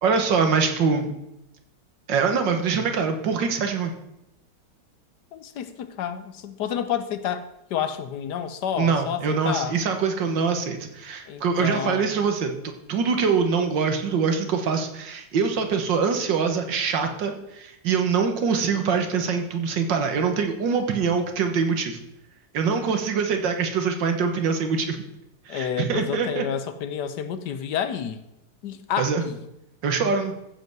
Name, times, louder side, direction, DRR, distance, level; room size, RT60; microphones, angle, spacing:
voice 1, 0.0-1.1 2.1-3.9 8.8-22.0 22.5-25.0 25.5-26.5 29.0-29.2 29.8-30.3, right 5 dB, 90° right, 6 dB, 2.0 m, -24 dB
voice 2, 5.3-9.8 11.3-12.2 25.5-28.2 28.6-29.4, left 9 dB, 70° left, 11 dB, 1.4 m, -30 dB
14.5 x 5.4 x 6.1 m, 0.85 s
omnidirectional pair, 1.9 m